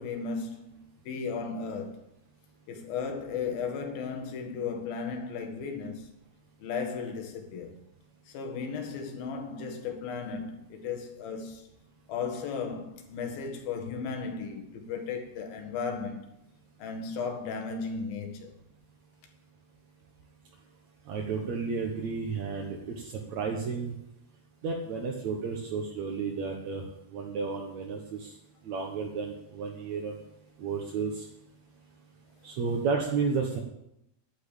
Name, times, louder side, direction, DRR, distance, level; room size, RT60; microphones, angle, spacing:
voice 1, 0.0-2.0 2.7-6.1 6.6-7.7 8.3-11.7 12.1-16.3 16.8-18.5, left 5 dB, 60° left, 3.4 m, -35 dB
voice 2, 21.1-23.0 23.3-23.9 24.6-26.8 27.1-28.3 28.6-30.2 30.6-31.3 32.4-33.6, right 5 dB, 60° right, 1.9 m, -32 dB
11.0 x 9.1 x 8.4 m
omnidirectional pair, 5.0 m